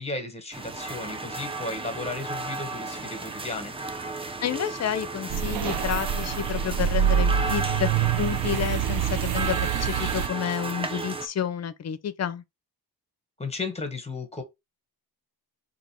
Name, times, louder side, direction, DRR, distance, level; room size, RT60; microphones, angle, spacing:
voice 1, 0.0-3.7 13.4-14.4, left 3 dB, 15° left, 1.3 m, -34 dB
sound 1, 0.5-11.3, right 3 dB, 15° right, 0.4 m, -34 dB
voice 2, 4.4-7.9 8.2-12.4, left 9 dB, 40° left, 0.6 m, -30 dB
sound 2, 5.3-10.3, right 9 dB, 60° right, 0.6 m, -26 dB
4.0 x 2.9 x 4.6 m
cardioid pair, 120°, 41 cm